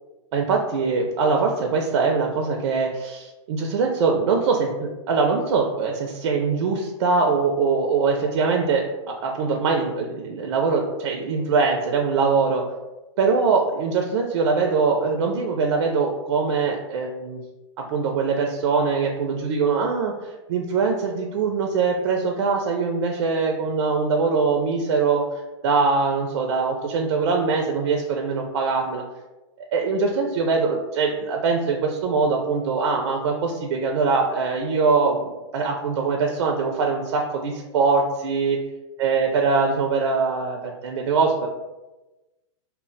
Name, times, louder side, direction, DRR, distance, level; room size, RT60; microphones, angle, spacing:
voice 1, 0.3-12.6 13.2-17.4 17.8-20.1 20.5-25.2 25.6-29.0 29.7-38.6 39.0-41.5, right 4 dB, 65° right, 2 dB, 0.4 m, -22 dB
2.1 x 2.0 x 3.8 m, 1.1 s
hypercardioid pair, 145°, 16 cm